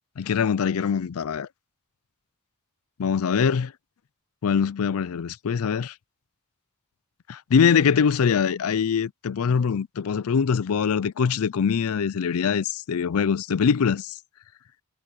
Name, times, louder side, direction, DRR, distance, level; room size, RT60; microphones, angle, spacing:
voice 1, 0.2-1.5 3.0-3.7 4.4-5.9 7.3-14.2, left 6 dB, 75° left, 0.4 m, -23 dB
head